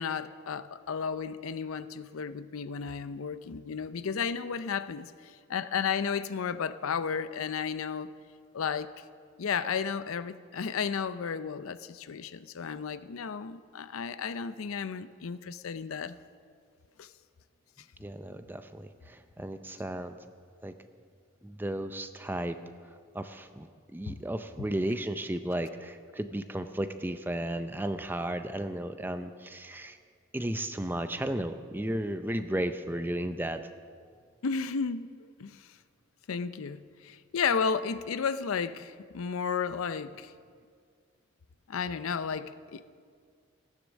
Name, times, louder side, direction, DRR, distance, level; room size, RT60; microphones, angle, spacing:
voice 1, 0.0-5.1 5.5-8.1 8.5-8.9 9.4-16.2 17.0-17.1 24.1-24.2 24.6-24.7 34.4-35.6 36.3-40.3 41.7-42.8, left 6 dB, 85° left, 14 dB, 0.5 m, -33 dB
voice 2, 18.0-20.1 20.6-20.7 21.4-22.6 23.1-30.0 30.3-33.7, right 1 dB, 10° right, 9 dB, 0.5 m, -34 dB
15.5 x 10.0 x 6.3 m, 2.1 s
head